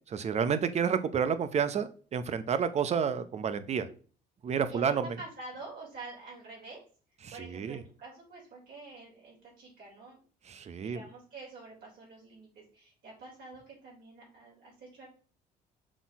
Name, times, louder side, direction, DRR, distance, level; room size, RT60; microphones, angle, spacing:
voice 1, 0.1-3.9 4.4-5.1 7.2-7.8 10.5-11.0, right 7 dB, 40° right, 12 dB, 0.7 m, -30 dB
voice 2, 4.7-6.8 7.3-10.2 10.8-15.1, right 3 dB, 65° right, -4 dB, 3.8 m, -47 dB
6.1 x 4.3 x 4.7 m, 0.40 s
cardioid pair, 110°, 17 cm